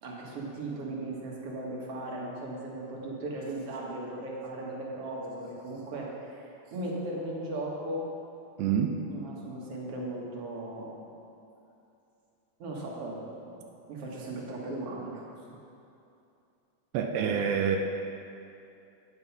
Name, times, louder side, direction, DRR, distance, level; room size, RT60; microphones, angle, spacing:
voice 1, 0.0-8.1 9.1-11.1 12.6-15.3, right 1 dB, 60° right, -3 dB, 2.1 m, -37 dB
voice 2, 8.6-9.0 16.9-17.8, right 7 dB, 80° right, 3 dB, 1.4 m, -27 dB
9.6 x 5.6 x 5.8 m, 2.7 s
omnidirectional pair, 3.3 m